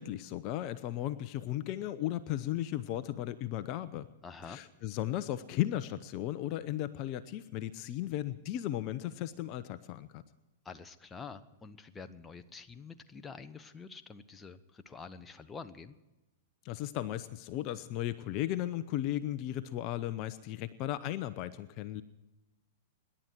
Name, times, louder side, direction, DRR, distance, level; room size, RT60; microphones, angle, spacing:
voice 1, 0.0-4.1 4.5-10.2 16.6-22.0, left 13 dB, 45° left, 14 dB, 0.8 m, -35 dB
voice 2, 4.2-4.6 10.6-15.9, left 5 dB, 15° left, 8 dB, 1.0 m, -47 dB
26.5 x 11.0 x 4.6 m, 1.0 s
hypercardioid pair, 105°, 0 cm